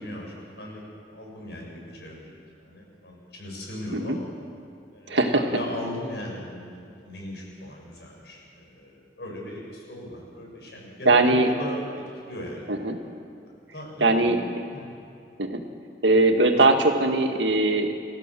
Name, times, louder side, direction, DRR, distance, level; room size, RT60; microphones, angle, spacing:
voice 1, 0.0-4.3 4.9-12.7 13.7-14.4 14.7-14.9, left 1 dB, 70° left, -1 dB, 7.1 m, -38 dB
voice 2, 5.1-5.4 11.1-11.5 12.7-13.0 14.0-14.4 15.4-15.6 16.0-17.9, right 2 dB, 90° right, 4 dB, 2.1 m, -20 dB
29.5 x 15.0 x 7.7 m, 2.5 s
head